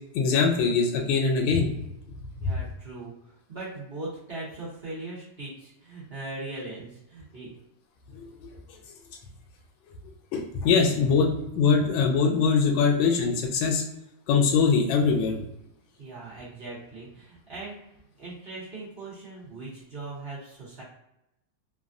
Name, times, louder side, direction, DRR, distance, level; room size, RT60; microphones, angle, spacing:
voice 1, 0.1-1.7 8.1-8.5 10.3-11.3 11.5-13.8 14.3-15.4, left 5 dB, 90° left, 0 dB, 1.3 m, -22 dB
voice 2, 2.4-3.1 3.5-7.5 16.0-17.8 18.2-20.8, right 2 dB, 55° right, -8 dB, 0.7 m, -39 dB
3.2 x 2.3 x 2.4 m, 0.86 s
omnidirectional pair, 2.1 m